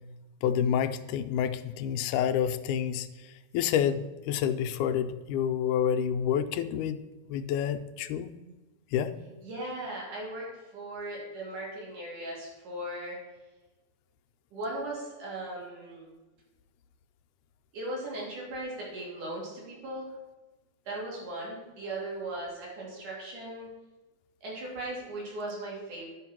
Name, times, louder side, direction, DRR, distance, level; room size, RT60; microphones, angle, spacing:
voice 1, 0.4-7.0 7.3-8.3 8.9-9.1, left 9 dB, 85° left, 9 dB, 2.1 m, -28 dB
voice 2, 9.4-13.2 14.5-16.1 17.7-20.1 20.9-23.7 24.4-26.1, right 1 dB, 85° right, -4 dB, 4.6 m, -38 dB
10.0 x 5.8 x 6.0 m, 1.2 s
omnidirectional pair, 3.5 m